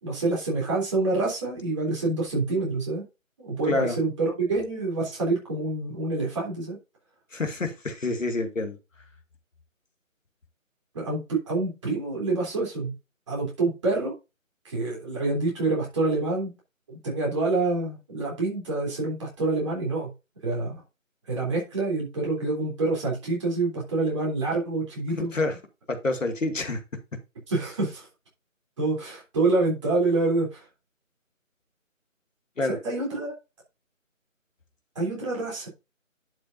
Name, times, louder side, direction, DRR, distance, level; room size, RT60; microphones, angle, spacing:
voice 1, 0.0-3.0 3.4-6.8 10.9-12.9 13.3-14.1 14.6-16.5 16.9-20.1 20.4-20.8 21.3-25.3 27.5-28.1 28.8-30.7 32.6-33.3 34.9-35.7, right 3 dB, 20° right, -3 dB, 3.4 m, -27 dB
voice 2, 7.3-8.8 25.2-25.6 25.9-26.8 32.6-32.8, left 2 dB, 65° left, 5 dB, 2.2 m, -27 dB
11.0 x 6.3 x 2.7 m, 0.27 s
figure-of-eight pair, 165°, 41 cm